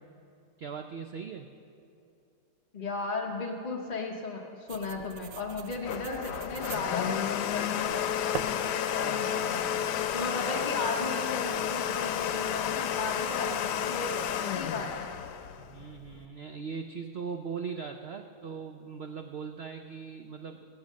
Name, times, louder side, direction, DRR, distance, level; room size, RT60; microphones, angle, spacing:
voice 1, 0.6-1.5 9.0-9.3 15.7-20.7, right 6 dB, 85° right, 6 dB, 0.5 m, -39 dB
voice 2, 2.7-8.1 8.6-9.6 10.1-15.1, left 3 dB, 40° left, 0 dB, 0.7 m, -35 dB
sound 1, 4.7-10.9, right 8 dB, 65° right, 0.8 m, -45 dB
Domestic sounds home sounds, 5.5-16.2, left 9 dB, 90° left, 1.2 m, -31 dB
20.5 x 7.3 x 6.4 m, 2.6 s
omnidirectional pair, 1.8 m